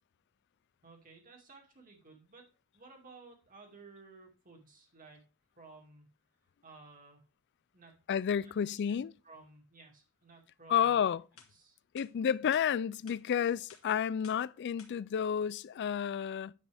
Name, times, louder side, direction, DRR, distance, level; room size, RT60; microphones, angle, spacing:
voice 1, 0.8-2.4 2.7-5.3 5.6-6.1 6.6-7.3 7.7-7.9 8.3-9.0 9.2-11.0 11.5-11.8, right 3 dB, 40° right, 2.3 m, -56 dB
voice 2, 8.1-9.1 10.7-11.2 11.9-16.5, left 8 dB, 55° left, 0.3 m, -31 dB
sound 1, 11.4-11.5 12.0-12.1 12.5-12.7 13.1-13.2 13.7-13.8 14.2-14.4 14.8-14.9, left 7 dB, 75° left, 1.8 m, -55 dB
9.7 x 7.6 x 3.4 m
head